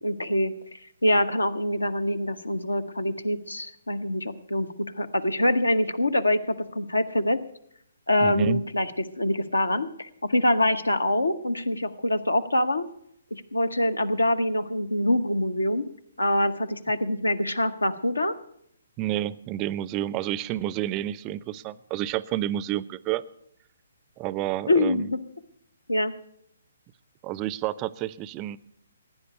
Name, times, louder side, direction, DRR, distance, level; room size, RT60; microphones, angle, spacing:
voice 1, 0.0-7.4 8.1-12.9 13.3-15.9 16.2-18.4 24.7-25.2 25.9-26.1, left 1 dB, 85° left, 11 dB, 1.0 m, -25 dB
voice 2, 8.2-8.6 19.0-23.2 24.2-25.1 27.2-28.6, right 13 dB, 25° right, 19 dB, 0.5 m, -30 dB
16.5 x 9.8 x 6.8 m, 0.71 s
figure-of-eight pair, 130°, 0 cm